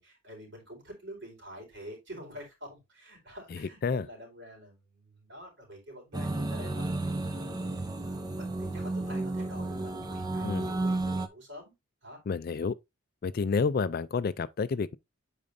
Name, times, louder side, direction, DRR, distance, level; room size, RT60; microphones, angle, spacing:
voice 1, 0.0-11.7 12.0-12.2, equal, 55° right, 4.3 m, -47 dB
voice 2, 3.5-4.1 10.4-10.7 12.3-12.7 13.2-15.0, left 5 dB, 45° left, 0.3 m, -30 dB
sound 1, 6.1-11.3, right 2 dB, 20° right, 0.5 m, -32 dB
8.6 x 5.1 x 2.6 m
head